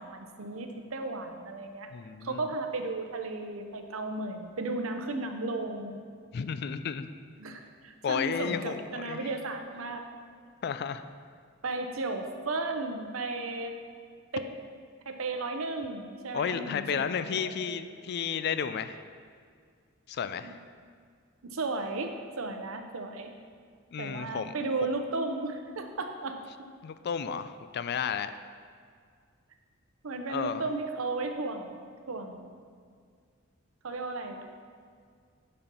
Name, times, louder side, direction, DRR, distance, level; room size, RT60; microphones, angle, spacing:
voice 1, 0.0-1.9 2.2-6.0 7.4-10.0 11.6-13.7 14.3-14.5 15.1-18.0 20.4-20.5 21.4-23.3 24.0-26.4 30.0-32.6 33.8-34.5, right 3 dB, 85° right, 5 dB, 0.8 m, -35 dB
voice 2, 1.9-2.4 6.3-7.1 8.0-9.2 10.6-11.0 16.3-19.0 20.1-20.5 23.9-24.5 26.8-28.3 30.3-30.6, left 7 dB, 55° left, 12 dB, 0.3 m, -32 dB
8.6 x 4.4 x 5.3 m, 2.1 s
head